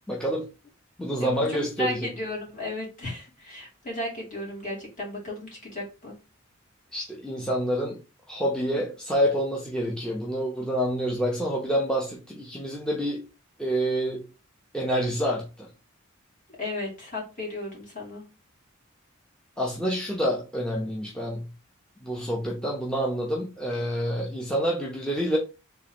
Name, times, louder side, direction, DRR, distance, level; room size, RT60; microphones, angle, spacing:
voice 1, 0.1-0.5 1.0-2.1 6.9-8.0 8.3-13.3 13.6-14.3 14.7-15.7 19.6-21.5 22.0-25.4, equal, 5° left, 0.7 m, -27 dB
voice 2, 1.2-6.2 16.6-18.2, left 2 dB, 40° left, 2.5 m, -34 dB
3.7 x 3.0 x 4.3 m
head